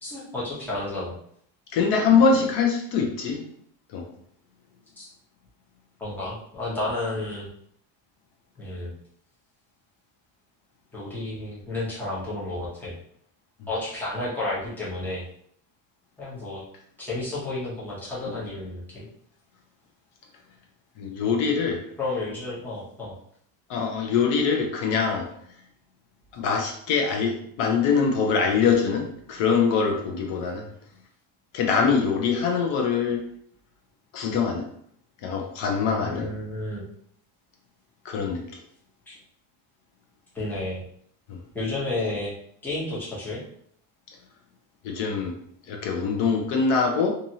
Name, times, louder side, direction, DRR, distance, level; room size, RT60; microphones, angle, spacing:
voice 1, 0.0-1.1 5.0-5.1 6.0-7.5 8.6-8.9 10.9-12.9 13.7-15.2 16.2-16.6 17.0-19.1 22.0-23.1 36.0-36.9 39.1-39.2 40.3-40.8 41.5-42.3 42.6-43.4, left 2 dB, 5° left, -8 dB, 0.7 m, -31 dB
voice 2, 1.7-3.4 3.9-4.1 18.3-18.4 21.0-21.8 23.7-25.3 26.3-30.7 31.5-33.3 34.1-34.7 35.2-36.3 38.0-38.6 41.3-41.4 44.8-45.3 45.7-47.1, left 5 dB, 65° left, 2 dB, 0.7 m, -23 dB
2.7 x 2.6 x 2.7 m, 0.66 s
cardioid pair, 170°, 45 cm